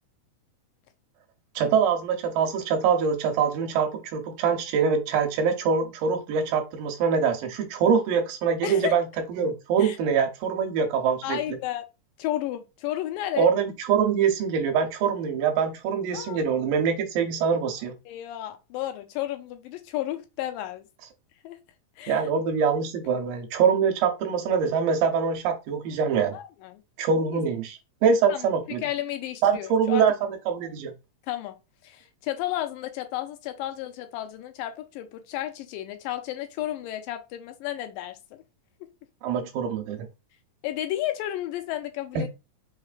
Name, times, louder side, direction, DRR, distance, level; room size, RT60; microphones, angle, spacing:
voice 1, 1.6-11.6 13.4-17.9 22.1-26.4 27.0-28.8 29.4-30.9 39.2-40.1 42.2-42.3, right 6 dB, 80° right, 2.4 m, -24 dB
voice 2, 8.6-9.0 9.8-10.0 11.2-11.8 12.2-13.5 16.1-16.4 18.1-20.8 21.4-21.6 22.0-22.3 26.3-26.8 27.3-27.4 28.3-28.5 28.8-30.0 31.3-31.6 31.8-38.4 40.6-42.3, left 13 dB, 85° left, 2.3 m, -32 dB
5.5 x 3.1 x 2.4 m
omnidirectional pair, 4.0 m